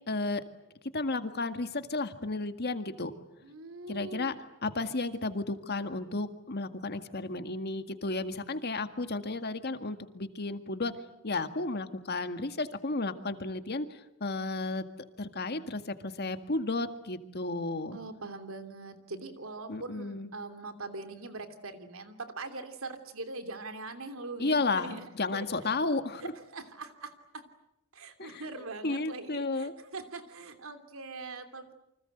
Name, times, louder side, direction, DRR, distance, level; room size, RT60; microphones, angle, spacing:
voice 1, 0.1-0.4 0.9-3.1 3.9-4.4 4.6-10.9 11.2-14.8 15.2-18.0 19.7-20.3 24.4-26.3 28.2-28.4 28.8-29.7, left 3 dB, 50° left, 8 dB, 1.9 m, -33 dB
voice 2, 3.4-4.3 17.9-25.7 26.2-27.4 27.9-31.7, right 3 dB, 85° right, 9 dB, 3.0 m, -42 dB
29.0 x 25.0 x 8.0 m, 0.87 s
head